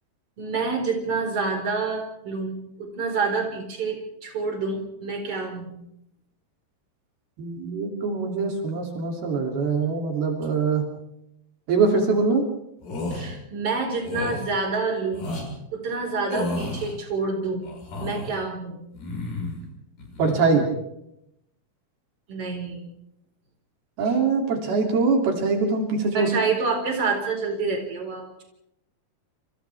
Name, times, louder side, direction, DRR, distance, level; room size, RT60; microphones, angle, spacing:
voice 1, 0.4-5.8 13.1-15.3 15.7-17.7 18.0-18.8 22.3-22.9 26.1-28.4, right 4 dB, 40° right, 0 dB, 5.6 m, -28 dB
voice 2, 7.4-10.9 11.7-12.4 20.2-20.7 24.0-26.3, right 4 dB, 80° right, 1 dB, 4.9 m, -23 dB
sound 1, 12.8-13.3 14.0-14.4 15.1-15.5 16.3-16.9 17.6-18.3 18.9-19.6 20.0-20.4, left 2 dB, 65° left, 8.0 m, -32 dB
29.0 x 28.5 x 3.5 m, 0.82 s
omnidirectional pair, 4.4 m